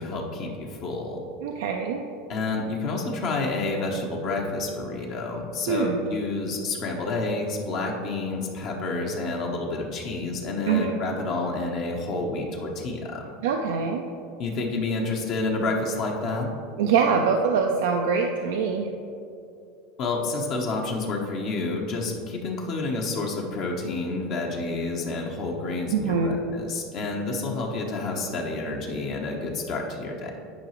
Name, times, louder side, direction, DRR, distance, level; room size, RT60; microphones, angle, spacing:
voice 1, 0.0-1.3 2.3-13.3 14.4-16.5 20.0-30.3, left 3 dB, 55° left, 0 dB, 1.0 m, -29 dB
voice 2, 1.4-2.0 5.7-6.0 10.7-11.0 13.4-14.0 16.8-18.9 25.9-26.4, right 5 dB, 80° right, 2 dB, 0.4 m, -24 dB
10.0 x 4.8 x 3.1 m, 2.5 s
hypercardioid pair, 95°, 0 cm